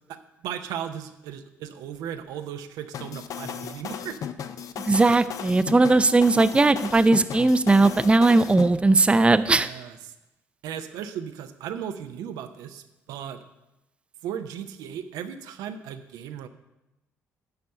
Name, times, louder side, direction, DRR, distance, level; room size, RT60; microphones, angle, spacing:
voice 1, 0.1-4.2 9.5-10.0 10.6-13.4 14.2-16.5, right 9 dB, 70° right, 8 dB, 0.6 m, -36 dB
sound 1, 2.9-8.7, left 8 dB, 55° left, 0.6 m, -35 dB
voice 2, 4.8-9.7, right 3 dB, 15° right, 12 dB, 0.4 m, -18 dB
10.5 x 4.2 x 6.7 m, 0.96 s
hypercardioid pair, 50°, 7 cm